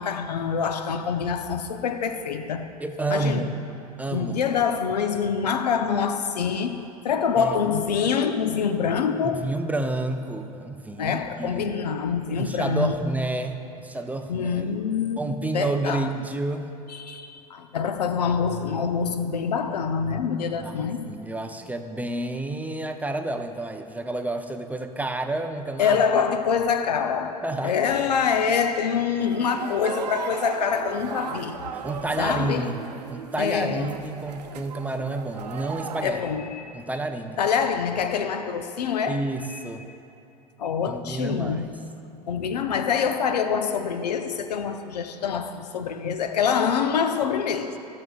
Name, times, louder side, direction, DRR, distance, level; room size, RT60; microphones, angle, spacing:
voice 1, 0.0-2.7 3.1-3.5 4.1-9.5 11.0-12.9 14.3-15.2 15.5-16.1 16.9-21.0 25.8-31.6 32.2-32.7 33.4-34.0 36.0-36.6 37.4-39.2 39.5-39.6 40.6-41.7 42.3-47.8, left 6 dB, 80° left, 9 dB, 0.6 m, -25 dB
voice 2, 2.8-3.6 4.0-4.4 7.4-7.5 9.2-11.7 12.4-14.7 15.2-16.7 20.6-26.0 27.4-27.8 31.7-32.7 33.1-36.2 36.7-37.4 39.1-39.8 40.9-41.7, right 2 dB, 5° right, 6 dB, 0.5 m, -30 dB
sound 1, 29.2-36.0, right 7 dB, 80° right, 0.7 m, -37 dB
18.0 x 6.4 x 2.3 m, 2.9 s
hypercardioid pair, 85°, 21 cm